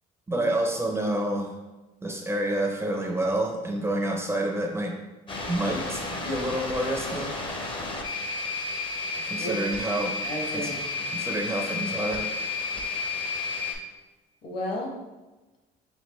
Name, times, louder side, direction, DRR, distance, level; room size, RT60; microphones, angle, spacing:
voice 1, 0.3-1.5 2.0-5.0 5.5-7.3 9.2-10.2 10.5-10.7 11.1-12.3, right 1 dB, 15° right, 1 dB, 0.5 m, -28 dB
sound 1, 5.3-13.7, left 3 dB, 30° left, 0.7 m, -32 dB
voice 2, 9.9-11.0 14.4-14.9, left 1 dB, 65° left, -1 dB, 1.3 m, -34 dB
4.4 x 2.9 x 3.0 m, 1.1 s
cardioid pair, 110°, 17 cm